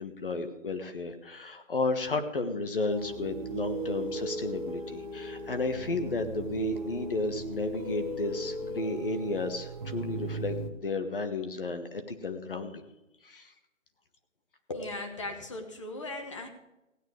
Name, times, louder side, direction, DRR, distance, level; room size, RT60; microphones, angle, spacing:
voice 1, 0.0-10.6 10.8-12.8 13.2-13.5, left 2 dB, 45° left, 7 dB, 1.5 m, -33 dB
sound 1, 2.9-10.7, right 1 dB, 35° right, 1.6 m, -37 dB
voice 2, 14.7-16.5, left 2 dB, 25° left, 5 dB, 1.3 m, -37 dB
16.5 x 9.1 x 4.8 m, 0.98 s
hypercardioid pair, 170°, 39 cm